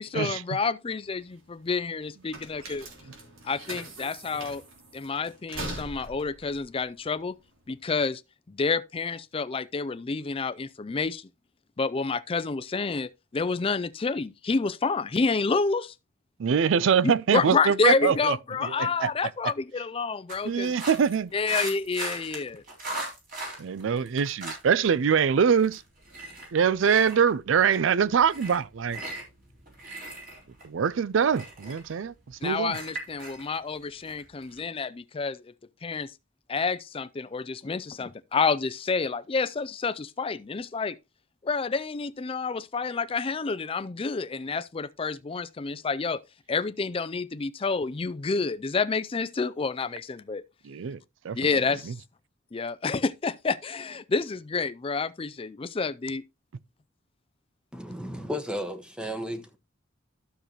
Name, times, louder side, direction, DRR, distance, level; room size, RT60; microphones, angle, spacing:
voice 1, 0.0-2.9 3.4-4.6 4.9-7.4 7.7-8.2 8.5-11.2 11.8-15.9 17.0-20.7 21.3-22.6 32.4-35.4 35.8-36.1 36.5-41.0 41.4-46.2 46.5-50.4 51.3-51.9 52.5-56.2, left 4 dB, 30° left, 0.4 m, -29 dB
sound 1, 1.0-7.8, right 2 dB, 90° right, 3.0 m, -42 dB
voice 2, 16.4-19.1 20.4-21.3 23.6-25.8 26.5-29.0 30.6-32.8 50.6-51.0 51.2-51.6 51.8-51.9, right 7 dB, 70° right, 0.4 m, -24 dB
sound 2, 20.3-24.9 25.2-34.6, right 2 dB, 45° right, 3.9 m, -39 dB
voice 3, 57.7-59.6, equal, 5° right, 1.0 m, -34 dB
12.5 x 6.6 x 2.9 m
head